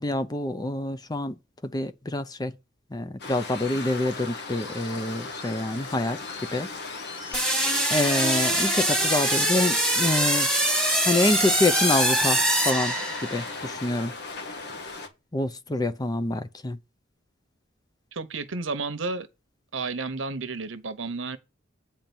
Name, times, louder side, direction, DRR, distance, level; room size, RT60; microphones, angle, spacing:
voice 1, 0.0-1.4 1.6-2.5 2.9-6.2 6.5-6.7 7.9-10.5 11.0-13.0 13.2-14.1 15.3-16.8, left 2 dB, 20° left, 0.6 m, -27 dB
Waves surf, 3.2-15.1, left 3 dB, 60° left, 1.6 m, -37 dB
sound 1, 7.3-13.5, right 1 dB, 5° left, 1.8 m, -23 dB
voice 2, 18.1-19.3 19.7-21.4, right 3 dB, 75° right, 1.0 m, -32 dB
8.9 x 4.5 x 7.0 m
head